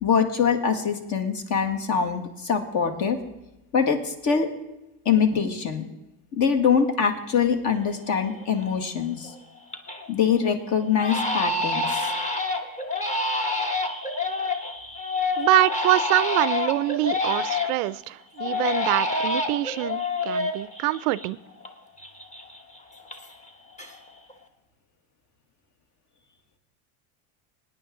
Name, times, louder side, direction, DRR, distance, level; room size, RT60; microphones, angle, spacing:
voice 1, 0.0-3.2 3.7-4.5 5.1-5.8 6.3-9.3 10.1-12.1, left 6 dB, 45° left, 5 dB, 1.9 m, -23 dB
Crying sobbing, 7.8-7.9 8.4-8.8 9.2-10.1 10.4-10.5 11.0-17.9 18.4-21.7 22.0-23.5 23.8-24.3, left 2 dB, 15° left, 1.3 m, -28 dB
voice 2, 15.4-21.4, right 18 dB, 85° right, 19 dB, 0.5 m, -25 dB
21.0 x 9.9 x 3.8 m, 0.95 s
cardioid pair, 140°, 42 cm